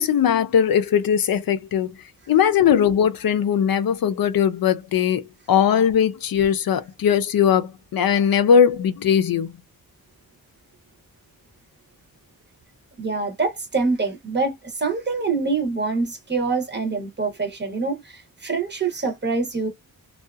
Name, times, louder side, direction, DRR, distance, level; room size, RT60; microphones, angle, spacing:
voice 1, 0.0-1.9 2.3-9.6, left 8 dB, 65° left, 0.5 m, -19 dB
voice 2, 13.0-19.7, right 4 dB, 30° right, 0.7 m, -25 dB
2.6 x 2.3 x 2.3 m
wide cardioid pair, 150°, 37 cm